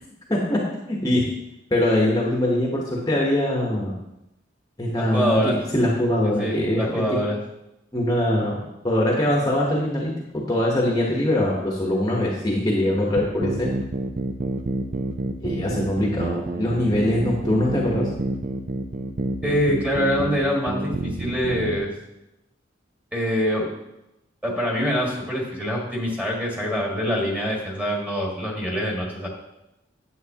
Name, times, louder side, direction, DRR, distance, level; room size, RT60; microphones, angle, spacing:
voice 1, 0.3-0.6 0.9-1.2 1.7-3.9 4.8-5.4 5.7-7.0 7.9-8.6 8.8-13.7 15.4-18.1, left 1 dB, 20° left, -2 dB, 1.1 m, -22 dB
voice 2, 5.0-5.6 6.2-7.4 19.4-21.9 23.1-23.7 24.4-29.3, equal, 10° right, -2 dB, 1.8 m, -25 dB
sound 1, 13.2-21.8, right 2 dB, 45° right, 0.6 m, -28 dB
9.4 x 7.6 x 2.9 m, 0.90 s
head